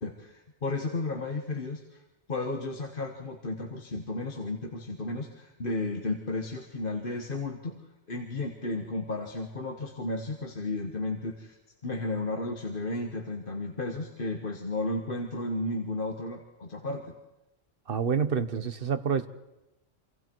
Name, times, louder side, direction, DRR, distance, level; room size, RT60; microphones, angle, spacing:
voice 1, 0.0-2.0 2.3-7.7 8.1-11.6 11.8-17.1, left 2 dB, 50° left, 4 dB, 1.6 m, -33 dB
voice 2, 17.9-19.3, right 6 dB, 50° right, 11 dB, 1.2 m, -27 dB
28.0 x 26.0 x 4.6 m, 0.98 s
omnidirectional pair, 1.2 m